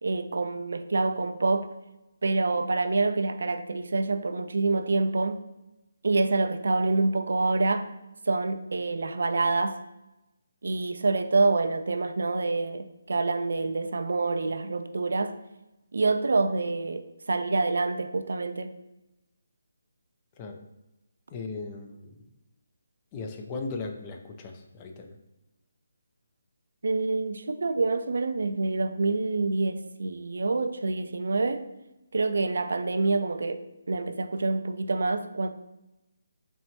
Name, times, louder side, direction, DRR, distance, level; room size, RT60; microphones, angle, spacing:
voice 1, 0.0-1.7 2.2-5.4 6.0-7.9 8.3-9.8 10.6-15.4 15.9-18.7 26.8-31.6 32.1-33.6 33.9-35.5, right 3 dB, 70° right, 9 dB, 0.3 m, -26 dB
voice 2, 21.3-22.1 23.1-25.2, left 3 dB, 25° left, 4 dB, 0.4 m, -37 dB
4.3 x 3.2 x 2.8 m, 0.97 s
figure-of-eight pair, 155°, 0 cm